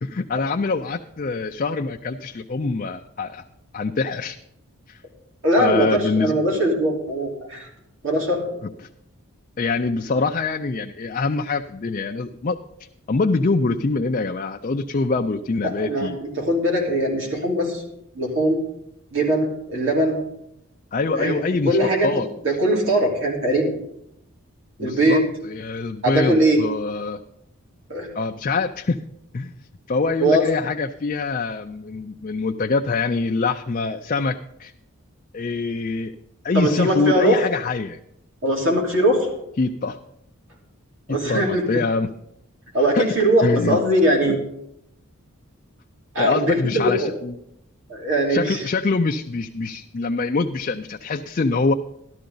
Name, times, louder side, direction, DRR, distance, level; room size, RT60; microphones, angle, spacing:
voice 1, 0.0-3.4 3.7-4.4 4.9-5.0 5.6-6.4 9.6-12.6 13.1-16.2 20.9-21.8 22.0-22.3 24.8-27.2 28.1-29.0 29.3-29.5 29.9-34.7 35.3-36.1 36.4-38.0 39.6-40.0 41.1-42.1 42.9-43.1 43.4-43.8 44.2-44.4 46.2-47.4 48.3-51.7, left 3 dB, 35° left, 3 dB, 0.4 m, -24 dB
voice 2, 5.4-7.7 8.0-8.4 15.6-17.8 18.1-18.6 19.1-20.2 21.1-21.4 21.7-22.1 22.4-23.7 24.8-25.2 26.0-26.6 27.9-28.1 30.2-30.4 36.5-37.4 38.4-39.3 41.1-41.8 42.7-44.4 46.1-47.1 47.9-48.6, right 1 dB, 60° right, -2 dB, 3.2 m, -20 dB
13.0 x 12.5 x 3.9 m, 0.79 s
head